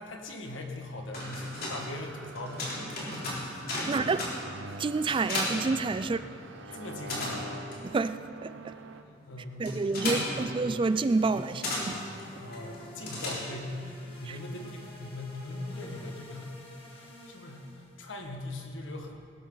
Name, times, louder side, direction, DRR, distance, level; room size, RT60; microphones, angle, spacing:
voice 1, 0.0-4.1 6.0-6.2 6.7-7.5 8.7-9.8 10.1-10.5 11.2-11.5 12.3-16.6 16.9-19.1, left 2 dB, 80° left, 1.8 m, -41 dB
sound 1, 0.9-6.5 6.7-13.8, left 1 dB, 50° left, 3.6 m, -36 dB
sound 2, 1.1-9.0, right 2 dB, 75° right, 0.7 m, -46 dB
voice 2, 3.9-4.3 4.8-6.2 6.7-6.8 7.8-8.8 9.6-12.0 14.3-14.4, right 3 dB, 25° right, 0.3 m, -29 dB
sound 3, 10.9-18.0, left 1 dB, 30° left, 1.8 m, -49 dB
20.0 x 12.0 x 4.0 m
head